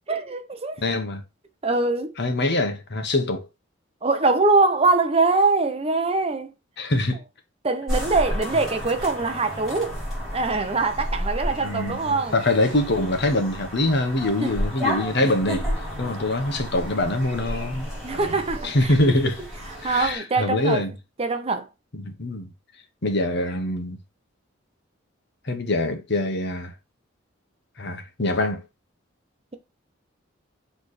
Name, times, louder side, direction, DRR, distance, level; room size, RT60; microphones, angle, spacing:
voice 1, 0.1-0.8 1.6-2.1 4.0-6.5 7.6-10.0 10.3-12.4 14.4-14.5 18.0-18.9 19.8-20.8 21.2-21.7, right 3 dB, 30° right, 0.7 m, -23 dB
voice 2, 0.8-1.2 2.2-3.5 6.8-7.2 11.6-15.7 16.0-18.3 18.6-19.4 19.8-20.9 21.9-22.5 23.0-24.0 25.4-26.7 27.8-28.6, left 1 dB, 60° left, 1.2 m, -24 dB
sound 1, 7.9-20.2, equal, ahead, 4.1 m, -32 dB
6.6 x 3.5 x 4.2 m
head